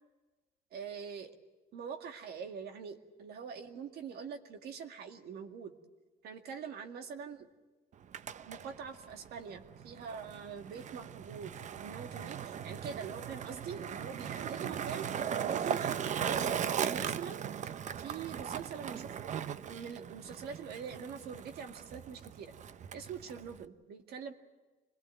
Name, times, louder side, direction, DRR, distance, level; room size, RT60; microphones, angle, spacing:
voice 1, 0.7-1.3 1.7-5.8 6.2-7.5 8.5-15.1 15.4-17.4 18.0-19.3 19.6-22.5 22.9-24.3, right 6 dB, 70° right, 5 dB, 2.1 m, -44 dB
Skateboard, 7.9-23.6, right 8 dB, 45° right, 0.7 m, -38 dB
25.0 x 18.5 x 9.2 m, 1.2 s
cardioid pair, 110°, 17 cm